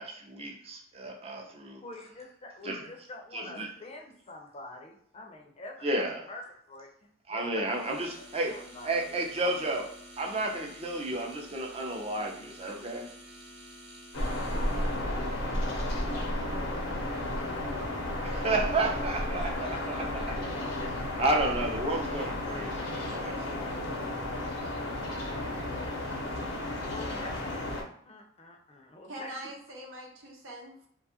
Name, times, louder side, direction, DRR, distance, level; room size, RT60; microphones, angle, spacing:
voice 1, 0.0-1.8 2.6-2.9 3.3-3.7 5.8-6.3 7.3-13.1 18.2-20.2 21.2-24.1, right 2 dB, 30° right, 1 dB, 0.5 m, -32 dB
voice 2, 1.8-5.9 6.3-6.9 7.3-7.8 8.5-9.2 19.4-20.9 26.8-27.6 28.1-29.5, left 2 dB, 30° left, 1 dB, 0.5 m, -46 dB
sound 1, 7.6-15.1, equal, 60° right, 0.9 m, -50 dB
sound 2, 14.1-27.8, left 1 dB, 85° left, 0.7 m, -33 dB
voice 3, 29.1-30.9, right 1 dB, 80° right, -1 dB, 0.8 m, -43 dB
2.4 x 2.3 x 2.7 m, 0.65 s
head